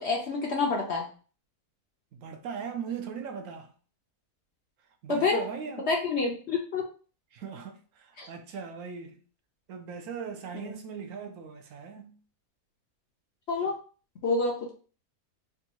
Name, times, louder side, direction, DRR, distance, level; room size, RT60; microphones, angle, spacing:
voice 1, 0.0-1.1 5.1-5.4 5.9-6.8 8.2-8.3 10.5-10.7 13.5-13.8 14.2-14.7, left 3 dB, 60° left, 0.8 m, -28 dB
voice 2, 2.1-3.7 5.0-5.8 7.3-9.2 9.7-12.2, right 6 dB, 70° right, 0.9 m, -39 dB
3.5 x 2.3 x 2.9 m
omnidirectional pair, 1.6 m